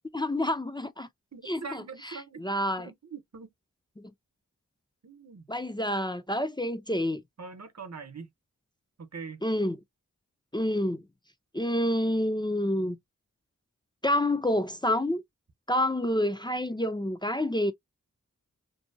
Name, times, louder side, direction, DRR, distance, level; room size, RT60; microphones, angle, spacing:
voice 1, 0.1-1.1 1.4-2.9 4.0-4.1 5.5-7.2 9.4-9.8 10.5-11.0 11.5-13.0 14.0-15.2 15.7-17.7, left 1 dB, 15° left, 0.4 m, -28 dB
voice 2, 1.3-2.4 2.8-3.5 5.0-5.4 7.4-8.3 9.0-9.4, right 5 dB, 55° right, 0.8 m, -42 dB
2.7 x 2.1 x 2.6 m
wide cardioid pair, 40°, 31 cm